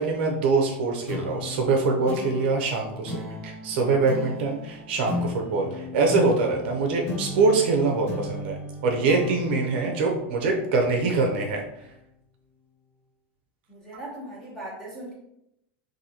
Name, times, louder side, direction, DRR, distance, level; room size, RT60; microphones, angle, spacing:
voice 1, 0.0-8.6 8.8-11.6, right 3 dB, 55° right, 2 dB, 0.6 m, -24 dB
sound 1, 1.1-11.9, left 2 dB, 80° left, 0.9 m, -36 dB
voice 2, 13.7-15.1, right 1 dB, 5° left, -6 dB, 1.2 m, -39 dB
4.1 x 2.7 x 2.8 m, 0.82 s
supercardioid pair, 170°, 7 cm